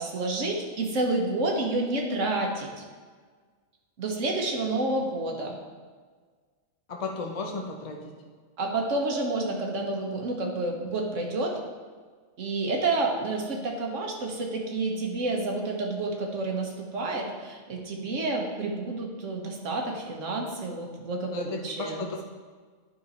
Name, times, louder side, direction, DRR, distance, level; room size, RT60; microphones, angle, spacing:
voice 1, 0.0-2.8 4.0-5.6 8.6-11.6 12.4-22.1, right 2 dB, 80° right, 0 dB, 1.6 m, -29 dB
voice 2, 6.9-8.0 21.3-22.2, left 3 dB, 35° left, 1 dB, 0.8 m, -34 dB
10.0 x 5.1 x 4.2 m, 1.5 s
omnidirectional pair, 1.3 m